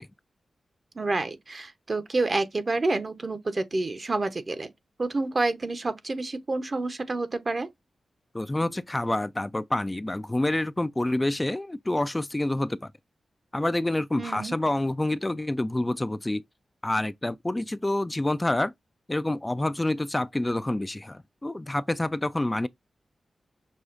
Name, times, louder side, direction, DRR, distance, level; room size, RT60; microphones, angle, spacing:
voice 1, 0.9-4.7 5.0-7.7 14.2-14.5, right 2 dB, 45° right, 0.8 m, -28 dB
voice 2, 8.3-12.9 13.5-16.4 16.8-18.7 19.1-22.7, left 1 dB, 20° left, 0.3 m, -27 dB
6.2 x 2.3 x 2.5 m
cardioid pair, 45°, 0 cm